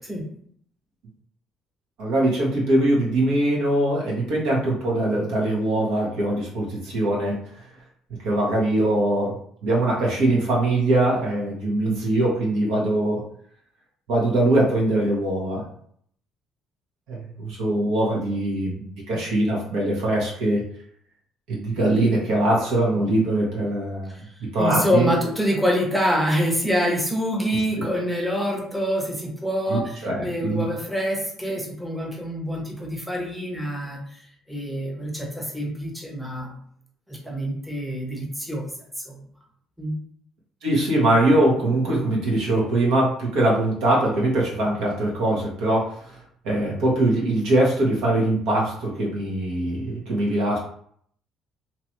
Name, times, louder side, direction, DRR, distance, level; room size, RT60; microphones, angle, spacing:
voice 1, 2.0-7.4 8.2-9.4 9.6-13.2 14.1-15.6 17.1-20.6 21.5-24.1 24.5-25.1 29.7-30.6 40.6-46.2 46.4-50.6, right 1 dB, 80° right, -4 dB, 1.3 m, -22 dB
voice 2, 24.1-34.2 34.5-36.6 37.1-38.7 39.1-39.3 39.8-39.9, equal, ahead, -1 dB, 0.9 m, -26 dB
2.9 x 2.5 x 3.0 m, 0.62 s
cardioid pair, 100°, 0 cm